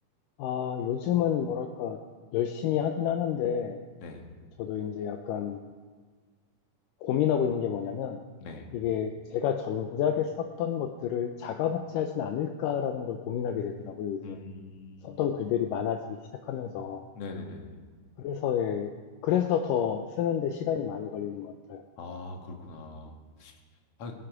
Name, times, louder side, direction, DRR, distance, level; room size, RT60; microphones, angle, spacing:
voice 1, 0.4-2.0 2.3-3.8 4.6-5.6 7.0-8.2 8.7-14.4 15.0-16.2 16.4-17.0 18.2-18.9 19.2-21.8, left 9 dB, 80° left, 6 dB, 2.2 m, -29 dB
voice 2, 8.4-8.7 14.2-15.2 17.2-17.8 22.0-23.6 24.0-24.1, left 3 dB, 50° left, 2 dB, 2.2 m, -42 dB
21.5 x 8.3 x 4.8 m, 1.5 s
omnidirectional pair, 4.0 m